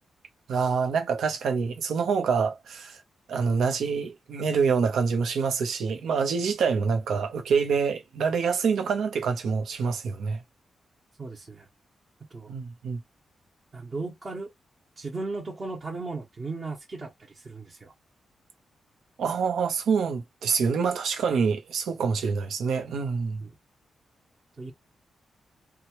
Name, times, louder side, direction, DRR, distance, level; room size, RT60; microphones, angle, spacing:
voice 1, 0.5-3.0 3.3-10.4 12.5-13.0 19.2-23.4, right 5 dB, 85° right, 0.8 m, -26 dB
voice 2, 11.2-11.7 12.3-12.5 13.7-14.5 15.0-17.9 23.4-23.6 24.6-24.7, right 3 dB, 30° right, 0.9 m, -36 dB
2.9 x 2.3 x 3.0 m
wide cardioid pair, 135°, 0 cm